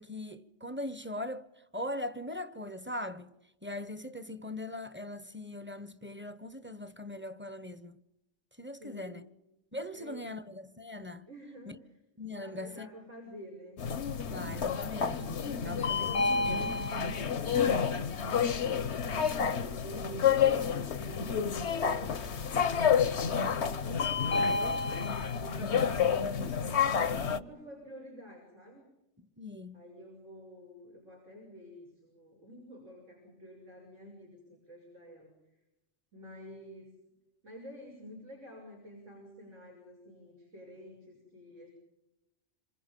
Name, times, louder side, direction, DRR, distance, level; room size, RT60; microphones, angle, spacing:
voice 1, 0.0-1.5 1.7-3.3 3.6-8.0 8.6-9.3 9.7-11.3 12.2-12.9 14.3-16.8 17.5-18.1 29.2-29.8, left 1 dB, 10° right, 1.0 m, -41 dB
voice 2, 8.8-9.2 9.9-10.3 11.3-11.8 12.3-13.8 19.5-24.8 25.2-26.6 27.3-28.8 29.7-35.3 36.1-36.9 37.4-41.7, equal, 90° right, 7.0 m, -49 dB
sound 1, 13.8-27.4, left 6 dB, 70° left, 1.3 m, -29 dB
27.5 x 26.5 x 5.4 m
omnidirectional pair, 1.2 m